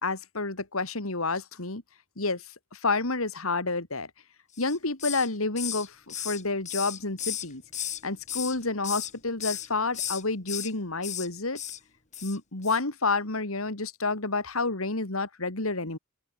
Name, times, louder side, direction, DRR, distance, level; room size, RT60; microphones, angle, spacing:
voice 1, 0.0-1.8 2.2-2.5 2.7-4.1 4.6-7.6 8.0-11.6 12.2-16.0, left 3 dB, 75° left, 3.0 m, -29 dB
Hiss, 4.5-5.3 5.6-8.0 8.3-9.1 9.4-9.7 9.9-10.7 11.0-11.3 11.5-11.8 12.1-12.4 12.6-12.8, left 10 dB, 35° left, 2.2 m, -35 dB
open air
head